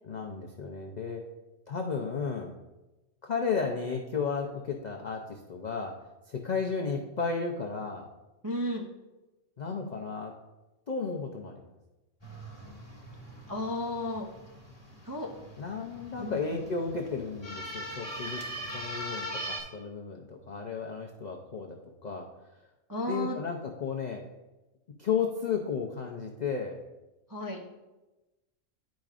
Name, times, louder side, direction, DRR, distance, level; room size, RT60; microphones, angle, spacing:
voice 1, 0.0-1.2 1.7-2.5 3.2-6.0 6.3-8.1 9.6-10.3 10.9-11.6 15.6-18.4 18.7-22.3 23.1-24.2 25.0-26.8, left 5 dB, 65° left, 1 dB, 0.4 m, -33 dB
voice 2, 8.4-8.8 13.5-14.3 15.0-15.3 16.2-16.6 22.9-23.4 27.3-27.6, left 1 dB, 30° right, -2 dB, 0.3 m, -33 dB
sound 1, 12.2-19.6, right 1 dB, 20° left, 1.1 m, -41 dB
10.5 x 5.1 x 2.4 m, 1.1 s
omnidirectional pair, 1.5 m